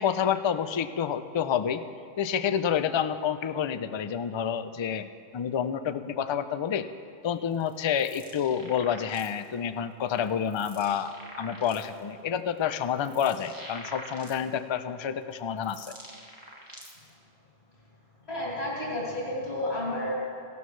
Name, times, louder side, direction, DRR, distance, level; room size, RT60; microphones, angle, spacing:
voice 1, 0.0-1.8 2.2-6.9 7.2-15.9, left 8 dB, 50° left, 11 dB, 0.3 m, -29 dB
sound 1, 7.5-9.5 10.1-12.0 12.6-14.7 15.3-17.1, equal, 20° right, 1.7 m, -46 dB
voice 2, 18.2-20.2, left 1 dB, 85° left, -6 dB, 2.6 m, -31 dB
16.5 x 12.5 x 3.2 m, 2.6 s
omnidirectional pair, 1.1 m